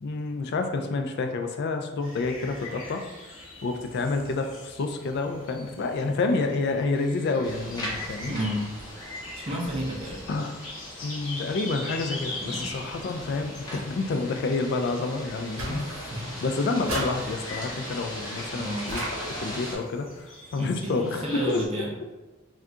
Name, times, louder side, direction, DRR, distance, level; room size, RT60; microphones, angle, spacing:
voice 1, 0.0-3.0 3.6-8.3 10.3-10.5 11.0-15.8 16.4-21.6, left 3 dB, 50° left, 5 dB, 0.3 m, -29 dB
sound 1, 2.0-21.7, left 2 dB, 70° left, 0.9 m, -43 dB
sound 2, 7.4-19.8, equal, 20° left, 0.8 m, -40 dB
voice 2, 8.3-8.7 9.3-10.3 12.4-12.7 15.7-16.4 18.5-18.9 20.6-21.9, equal, 30° right, -2 dB, 0.5 m, -32 dB
sound 3, 15.6-16.4 16.9-17.7 18.9-19.7, right 1 dB, 75° right, 0.8 m, -35 dB
2.6 x 2.4 x 3.4 m, 1.1 s
head